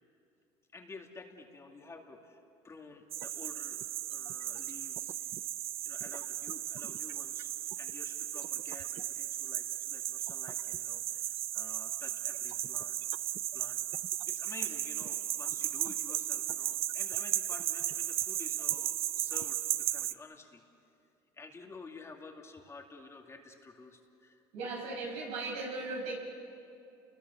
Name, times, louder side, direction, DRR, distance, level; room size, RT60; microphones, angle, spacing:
voice 1, 0.7-5.4 5.8-13.0 13.5-13.8 14.3-20.6 21.3-24.4, left 3 dB, 25° left, 2 dB, 2.5 m, -51 dB
sound 1, 3.1-20.1, right 13 dB, 60° right, 0.6 m, -35 dB
voice 2, 24.5-26.1, right 3 dB, 80° right, 0 dB, 6.2 m, -37 dB
29.5 x 21.0 x 7.0 m, 2.7 s
supercardioid pair, 100°, 11 cm